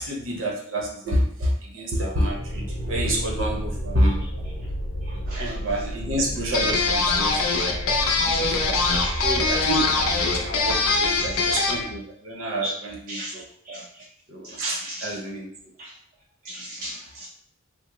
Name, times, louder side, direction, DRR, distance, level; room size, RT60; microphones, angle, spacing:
voice 1, 0.0-4.2 5.3-7.4 8.2-8.8 9.2-10.2 10.4-13.4 14.3-15.5, right 1 dB, 60° right, -1 dB, 0.8 m, -28 dB
sound 1, 2.2-11.8, equal, 5° left, 0.6 m, -33 dB
voice 2, 5.1-5.5 7.1-7.2 7.5-8.3 8.7-9.2 10.6-11.4 12.6-12.7 13.1-13.3 13.7-13.8 14.4-15.2 15.8-15.9 16.4-17.3, right 1 dB, 40° right, -4 dB, 0.4 m, -36 dB
sound 2, 6.5-11.9, left 3 dB, 75° left, 0.5 m, -23 dB
3.6 x 2.0 x 2.9 m, 0.63 s
head